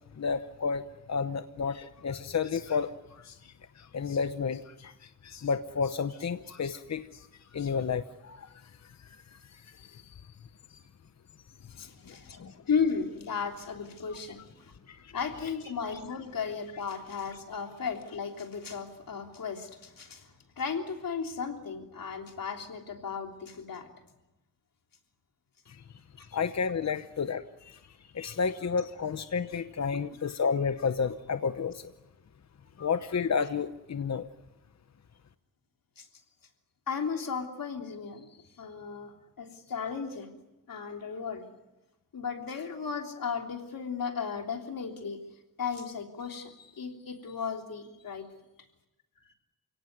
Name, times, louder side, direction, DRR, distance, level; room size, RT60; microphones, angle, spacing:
voice 1, 0.1-10.3 10.7-10.8 11.8-12.6 14.9-15.1 25.7-25.8 26.3-31.9 32.8-34.3, left 5 dB, 55° left, 10 dB, 0.9 m, -32 dB
voice 2, 11.8-14.8 15.1-20.3 20.6-23.9 26.2-26.3 28.2-28.3 29.9-30.0 36.0-36.1 36.9-40.4 40.7-41.5 42.1-45.2 45.6-48.3, left 6 dB, 90° left, 3 dB, 3.4 m, -35 dB
29.5 x 17.5 x 9.4 m, 0.99 s
wide cardioid pair, 140°, 33 cm